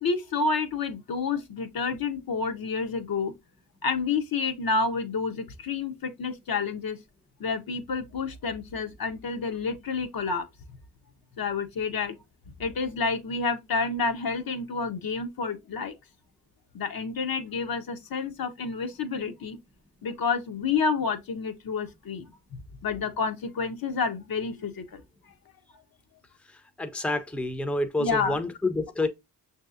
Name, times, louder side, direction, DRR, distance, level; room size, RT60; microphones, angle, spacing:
voice 1, 0.0-3.3 3.8-7.0 7.4-10.5 11.4-12.2 12.6-15.9 16.7-19.6 20.0-22.3 22.8-25.0 28.0-28.4, left 4 dB, 55° left, 0.8 m, -29 dB
voice 2, 26.8-29.1, left 2 dB, 5° left, 0.6 m, -28 dB
5.9 x 2.8 x 2.3 m
cardioid pair, 50°, 42 cm